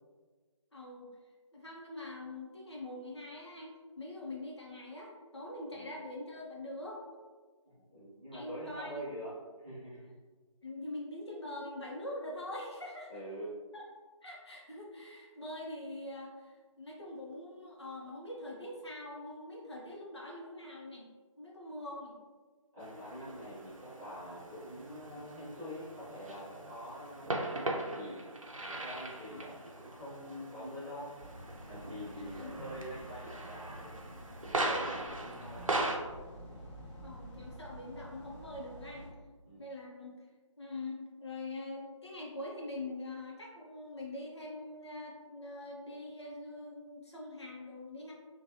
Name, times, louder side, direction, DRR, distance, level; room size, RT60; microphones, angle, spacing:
voice 1, 0.7-1.1 1.5-7.0 8.3-9.1 10.6-13.1 13.7-13.8 14.2-21.1 21.4-22.2 29.3-29.4 32.1-32.5 35.0-35.2 37.0-39.2 39.6-40.1 40.6-48.1, left 2 dB, 55° left, -2 dB, 0.6 m, -44 dB
voice 2, 7.6-9.3 9.6-10.1 13.1-13.5 22.7-28.2 28.6-31.1 31.6-34.0 34.4-35.8 39.4-39.6, equal, 10° right, -15 dB, 0.5 m, -45 dB
sound 1, 22.8-36.0, right 2 dB, 75° right, 0.5 m, -40 dB
sound 2, 31.2-39.1, equal, 25° left, 1.0 m, -49 dB
3.0 x 2.2 x 2.6 m, 1.4 s
figure-of-eight pair, 155°, 17 cm